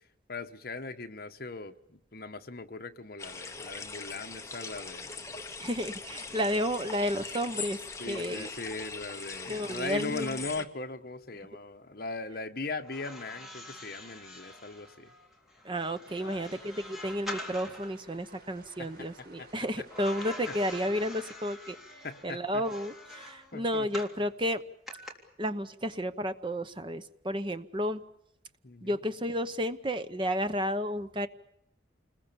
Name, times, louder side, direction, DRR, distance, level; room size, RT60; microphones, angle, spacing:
voice 1, 0.3-5.3 6.3-6.6 8.0-15.1 16.2-16.6 18.8-18.9 19.4-19.5 20.5-20.6 22.0-22.6 23.5-23.9 28.6-29.0, left 3 dB, 50° left, 6 dB, 1.4 m, -39 dB
sound 1, 3.2-10.6, left 4 dB, 15° left, 1.3 m, -41 dB
voice 2, 5.6-7.8 8.1-8.5 9.5-10.4 15.6-21.8 22.2-24.6 25.4-28.0 28.8-31.3, equal, 25° right, 10 dB, 0.9 m, -32 dB
sound 2, 12.8-18.0 19.9-24.2 24.9-25.1, left 1 dB, ahead, 3.4 m, -45 dB
sound 3, 16.1-21.1, right 2 dB, 50° right, 4.3 m, -55 dB
28.5 x 21.0 x 7.1 m, 0.74 s
head